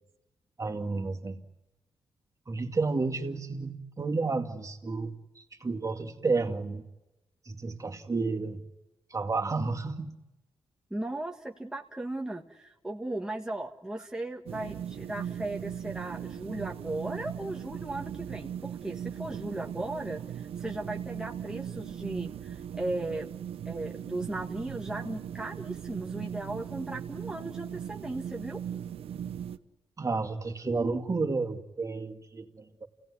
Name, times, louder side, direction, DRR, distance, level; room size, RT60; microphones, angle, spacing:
voice 1, 0.6-1.4 2.5-6.8 7.5-8.6 9.1-10.1 30.0-32.9, right 3 dB, 35° right, 3 dB, 2.3 m, -31 dB
voice 2, 10.9-23.3 23.6-28.6, right 2 dB, 5° right, 0 dB, 1.6 m, -37 dB
sound 1, 14.5-29.6, right 9 dB, 90° right, 0.8 m, -39 dB
29.0 x 17.5 x 9.8 m, 1.0 s
cardioid pair, 75°, 10 cm